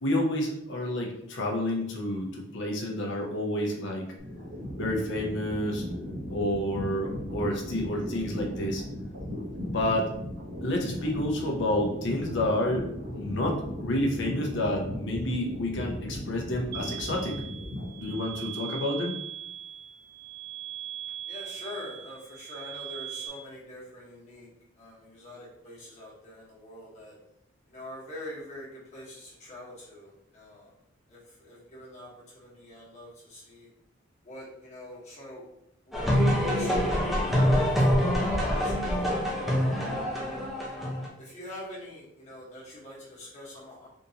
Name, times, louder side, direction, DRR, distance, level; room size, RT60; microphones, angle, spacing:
voice 1, 0.0-4.1 4.7-5.9 6.3-8.8 9.7-10.1 10.6-17.4 18.0-19.1, left 1 dB, 60° left, 0 dB, 0.7 m, -29 dB
sound 1, 4.2-18.4, equal, 70° right, 0.9 m, -37 dB
sound 2, 16.7-23.3, right 11 dB, 50° right, 0.5 m, -40 dB
voice 2, 21.3-24.5 24.8-27.2 27.7-30.7 31.1-33.7 34.2-35.4 35.9-39.2 39.4-40.5 41.2-43.9, left 1 dB, 35° left, -6 dB, 1.2 m, -44 dB
sound 3, 35.9-41.1, equal, ahead, 0.6 m, -25 dB
3.6 x 2.6 x 2.8 m, 0.77 s
head